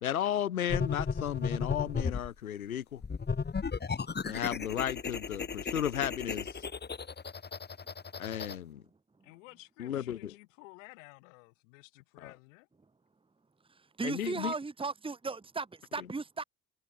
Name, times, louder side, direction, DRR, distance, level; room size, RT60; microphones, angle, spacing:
voice 1, 0.0-3.0 4.2-6.7 8.2-8.8 9.8-10.3 12.2-12.3 14.0-14.5, left 10 dB, 80° left, 0.7 m, -34 dB
sound 1, 0.7-2.3 3.0-8.6, left 5 dB, 25° left, 4.1 m, -35 dB
voice 2, 9.2-12.7, left 26 dB, 65° left, 6.4 m, -54 dB
voice 3, 14.0-16.4, right 4 dB, 10° right, 1.7 m, -36 dB
figure-of-eight pair, 55°, 42 cm